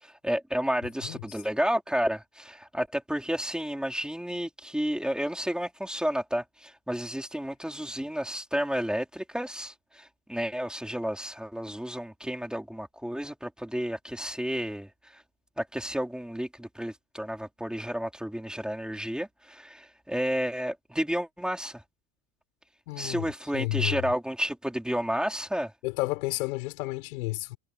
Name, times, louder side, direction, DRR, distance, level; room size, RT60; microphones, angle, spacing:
voice 1, 0.0-15.2 15.6-21.8 23.0-25.7, equal, ahead, 4.6 m, -31 dB
voice 2, 1.0-1.4 22.9-24.0 25.8-27.6, left 22 dB, 90° left, 7.1 m, -32 dB
cardioid pair, 150°, 42 cm